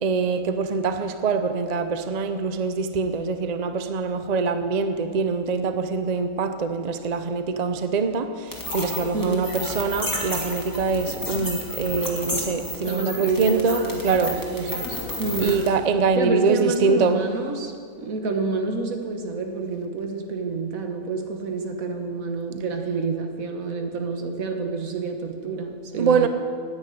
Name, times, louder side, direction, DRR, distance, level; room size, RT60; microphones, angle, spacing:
voice 1, 0.0-14.3 15.4-17.2 25.9-26.3, right 4 dB, 45° right, 9 dB, 0.5 m, -24 dB
sound 1, 8.5-15.7, left 1 dB, 15° left, 1.9 m, -32 dB
voice 2, 9.1-9.5 12.8-15.6 16.2-26.3, right 3 dB, 65° right, 4 dB, 1.7 m, -28 dB
10.0 x 9.1 x 9.2 m, 2.1 s
omnidirectional pair, 1.6 m